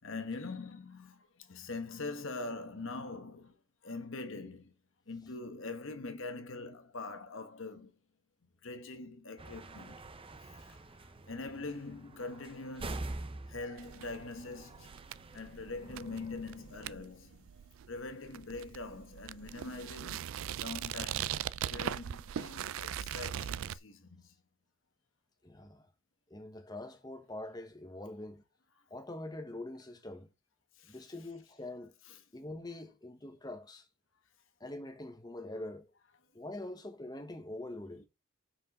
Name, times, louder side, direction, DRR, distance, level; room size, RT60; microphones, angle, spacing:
voice 1, 0.0-3.6 3.8-4.7 5.1-7.9 8.6-10.0 10.4-10.8 11.3-13.2 13.5-14.9 15.3-17.6 17.9-20.3 20.6-21.3 21.7-24.3 30.8-31.0 32.1-32.2, left 3 dB, 60° left, 1.2 m, -43 dB
sound 1, 9.4-16.9, right 2 dB, 25° right, 0.6 m, -46 dB
sound 2, 13.8-23.8, right 10 dB, 70° right, 0.3 m, -40 dB
sound 3, 15.7-17.7 18.7-20.2, left 1 dB, 40° left, 0.7 m, -60 dB
voice 2, 25.4-25.9 26.3-28.4 28.9-30.3 30.9-31.9 32.3-33.9 34.6-35.9 36.3-38.1, left 1 dB, 20° left, 1.1 m, -44 dB
5.8 x 5.1 x 5.2 m
head